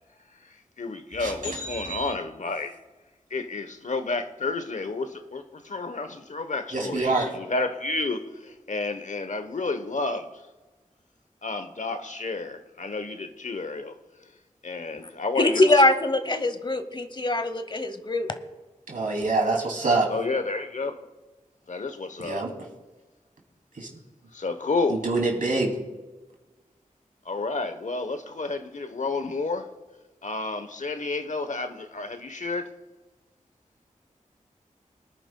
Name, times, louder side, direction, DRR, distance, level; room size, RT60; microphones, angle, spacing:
voice 1, 0.4-2.8 3.3-10.3 11.4-13.9 14.6-15.6 20.1-21.1 21.7-22.4 24.3-25.0 27.2-29.7 30.2-32.7, left 3 dB, 60° left, 0.9 m, -31 dB
voice 2, 1.2-2.1 6.7-7.3 18.9-20.1 22.2-22.5 23.8-23.9 24.9-25.8, right 3 dB, 75° right, 2.8 m, -26 dB
voice 3, 15.4-18.3, left 2 dB, 35° left, 1.0 m, -22 dB
23.0 x 10.0 x 2.3 m
cardioid pair, 45°, 14 cm